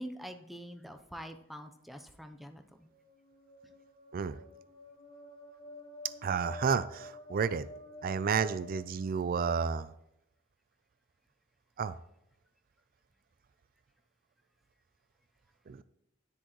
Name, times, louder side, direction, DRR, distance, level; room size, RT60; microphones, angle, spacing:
voice 1, 0.0-2.9 3.6-3.7, equal, ahead, 6 dB, 0.7 m, -45 dB
sound 1, 2.8-9.6, left 1 dB, 35° left, 2.7 m, -51 dB
voice 2, 6.2-7.7 8.0-9.9 11.8-12.0 15.7-15.8, right 6 dB, 45° right, 15 dB, 0.4 m, -31 dB
10.0 x 10.0 x 3.1 m, 0.81 s
head